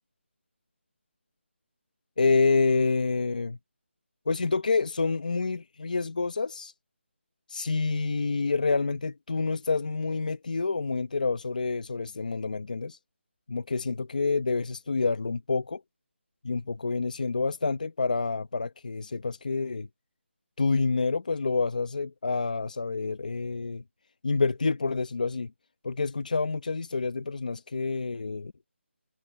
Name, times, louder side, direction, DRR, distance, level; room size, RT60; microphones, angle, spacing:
voice 1, 2.2-3.6 4.3-6.7 7.5-13.0 13.5-15.8 16.4-19.9 20.6-23.8 24.2-25.5 25.8-28.5, left 4 dB, 40° left, 0.9 m, -28 dB
figure-of-eight pair, 180°, 7 cm